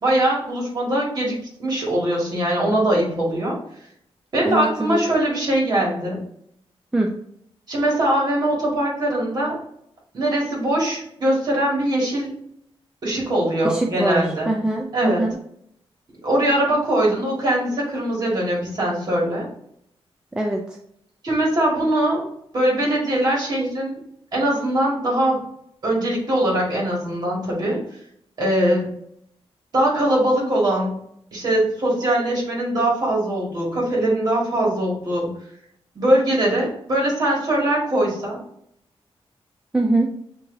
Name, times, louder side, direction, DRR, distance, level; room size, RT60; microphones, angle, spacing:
voice 1, 0.0-3.6 4.3-6.2 7.7-9.6 10.1-12.3 13.0-14.5 14.9-15.2 16.2-19.4 21.2-22.3 22.5-24.0 24.3-25.4 25.8-27.8 28.4-28.9 29.7-31.0 31.3-35.3 36.0-38.4, right 1 dB, 40° right, -4 dB, 1.9 m, -21 dB
voice 2, 4.4-5.0 6.9-7.1 13.6-15.4 20.3-20.8 39.7-40.1, right 2 dB, 10° right, 0 dB, 0.4 m, -23 dB
6.8 x 2.9 x 2.6 m, 0.70 s
wide cardioid pair, 180°, 10 cm